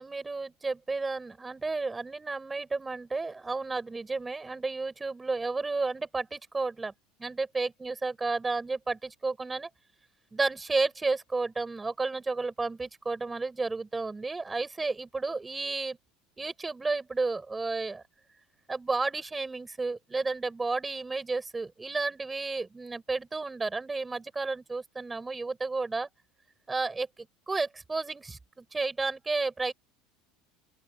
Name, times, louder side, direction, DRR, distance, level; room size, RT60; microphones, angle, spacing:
voice 1, 0.0-6.9 7.2-9.7 10.3-16.0 16.4-18.0 18.7-26.1 26.7-29.7, right 3 dB, 10° right, 5.8 m, -32 dB
open air
cardioid pair, 150°, 0 cm